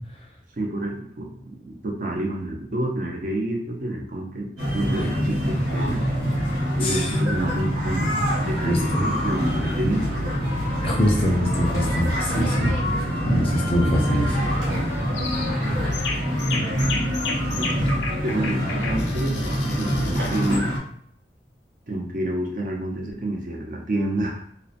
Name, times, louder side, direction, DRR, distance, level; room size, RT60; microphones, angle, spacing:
voice 1, 0.6-6.0 6.8-8.2 8.5-10.4 16.5-17.2 17.5-17.7 18.1-20.7 21.9-24.4, right 1 dB, 45° right, 0 dB, 0.4 m, -29 dB
sound 1, 4.6-20.8, equal, 85° right, 0.7 m, -25 dB
voice 2, 10.8-12.8 13.2-14.4, equal, 30° left, 0 dB, 0.5 m, -23 dB
sound 2, 15.1-15.5 15.9-20.6, left 4 dB, 90° left, 0.4 m, -33 dB
2.7 x 2.0 x 2.4 m, 0.63 s
head